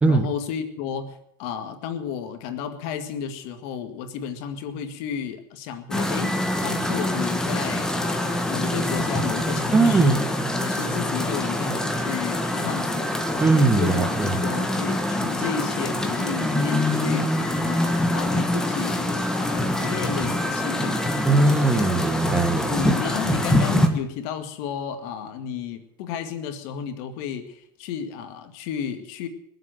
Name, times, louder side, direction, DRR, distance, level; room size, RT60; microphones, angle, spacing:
voice 1, 0.1-10.3 10.6-13.3 13.8-17.3 17.6-21.3 21.7-21.9 22.6-29.3, left 7 dB, 60° left, 7 dB, 1.9 m, -32 dB
sound 1, 5.9-23.9, left 1 dB, 5° left, 1.5 m, -25 dB
voice 2, 9.7-10.2 13.4-14.4 21.2-22.8, right 3 dB, 10° right, 8 dB, 1.1 m, -20 dB
21.0 x 7.8 x 7.7 m, 0.74 s
supercardioid pair, 135°, 11 cm